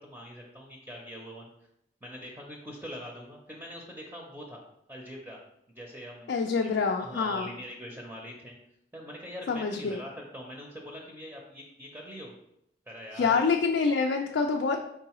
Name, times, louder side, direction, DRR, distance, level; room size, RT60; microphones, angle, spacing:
voice 1, 0.0-1.5 2.0-4.6 4.9-5.4 5.7-6.3 6.6-6.7 7.0-8.5 8.9-12.3 12.9-13.4, equal, 10° right, -1 dB, 0.5 m, -43 dB
voice 2, 6.3-7.5 9.5-10.0 13.2-14.9, left 4 dB, 80° left, 2 dB, 0.4 m, -26 dB
4.6 x 3.7 x 3.0 m, 0.79 s
head